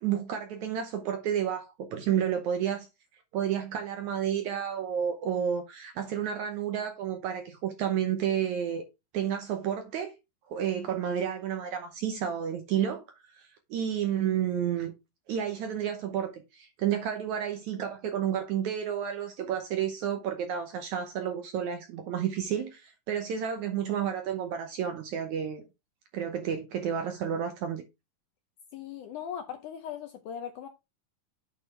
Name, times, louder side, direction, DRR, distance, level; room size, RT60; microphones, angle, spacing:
voice 1, 0.0-2.9 3.3-8.8 9.1-10.1 10.5-13.0 13.3-14.9 15.3-25.6 26.1-27.8, right 9 dB, 70° right, 1.9 m, -31 dB
voice 2, 28.7-30.7, left 8 dB, 75° left, 1.9 m, -39 dB
8.9 x 4.3 x 4.5 m
omnidirectional pair, 4.3 m